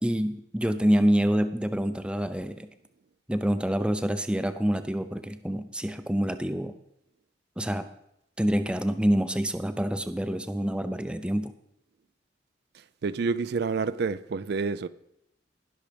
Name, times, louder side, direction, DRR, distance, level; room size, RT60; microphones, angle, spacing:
voice 1, 0.0-2.7 3.3-6.7 7.6-7.9 8.4-11.5, equal, 5° right, 0.6 m, -26 dB
voice 2, 13.0-14.9, right 4 dB, 60° right, 0.4 m, -28 dB
19.0 x 6.4 x 5.2 m
head